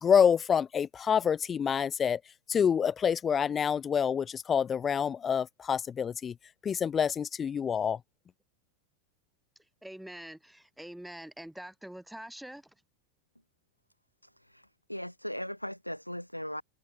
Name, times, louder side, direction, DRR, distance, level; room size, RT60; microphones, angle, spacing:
voice 1, 0.0-2.2 2.5-6.4 6.6-8.0, left 7 dB, 20° left, 0.6 m, -27 dB
voice 2, 9.8-12.7, right 1 dB, ahead, 2.3 m, -45 dB
voice 3, 14.2-16.6, equal, 90° left, 2.5 m, -39 dB
figure-of-eight pair, 90°, 0 cm